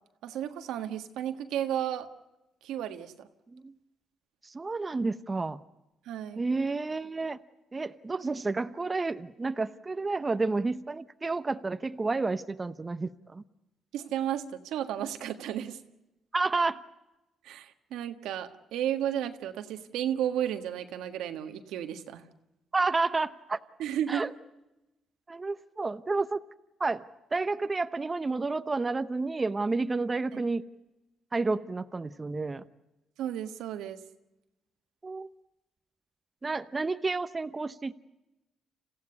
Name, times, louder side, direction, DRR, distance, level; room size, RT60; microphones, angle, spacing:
voice 1, 0.2-2.1 2.6-3.3 6.0-6.4 13.9-15.8 17.4-22.2 23.8-24.2 30.3-30.4 33.2-34.0, right 10 dB, 85° right, 8 dB, 1.6 m, -33 dB
voice 2, 4.4-5.6 6.4-7.4 7.7-13.4 16.3-16.8 22.7-23.6 24.1-24.3 25.3-26.4 26.8-27.0 27.3-30.6 31.3-32.6 35.0-35.3 36.4-37.9, right 3 dB, 25° right, 11 dB, 0.9 m, -30 dB
27.5 x 15.5 x 9.7 m, 0.98 s
cardioid pair, 90°, 0 cm